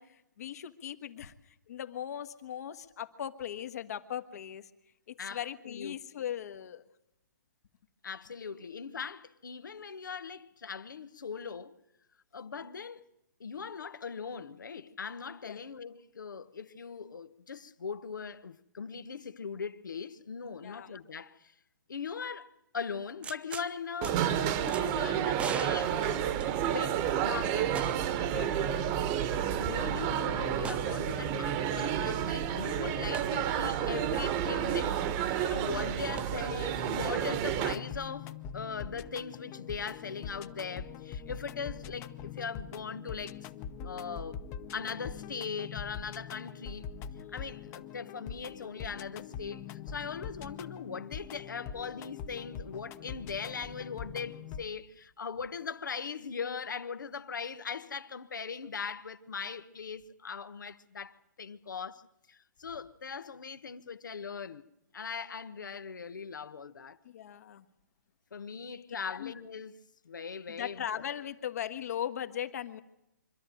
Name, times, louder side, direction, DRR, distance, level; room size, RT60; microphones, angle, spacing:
voice 1, 0.0-4.7 5.1-6.8 15.4-15.6 20.6-21.0 28.3-28.7 35.6-35.8 67.0-67.6 69.1-69.3 70.5-72.8, left 10 dB, 55° left, 1.5 m, -39 dB
voice 2, 5.2-6.0 8.0-11.8 12.3-13.0 13.4-21.5 21.9-24.3 24.6-26.3 26.6-27.8 29.6-43.4 43.8-44.4 44.7-46.8 47.3-62.0 62.3-64.6 64.9-67.0 68.3-69.7 70.0-70.9, left 6 dB, 80° left, 1.2 m, -40 dB
sound 1, 23.2-23.7 24.0-24.1 24.7-24.8 25.4-26.9 27.8-28.2 28.5-28.6 30.6-30.9 33.1-33.3 36.2-36.3, right 6 dB, 10° right, 0.8 m, -40 dB
sound 2, 24.0-37.7, right 9 dB, 30° right, 1.3 m, -30 dB
sound 3, 37.6-54.6, left 7 dB, 25° left, 0.9 m, -43 dB
25.5 x 12.5 x 9.1 m
hypercardioid pair, 140°, 10 cm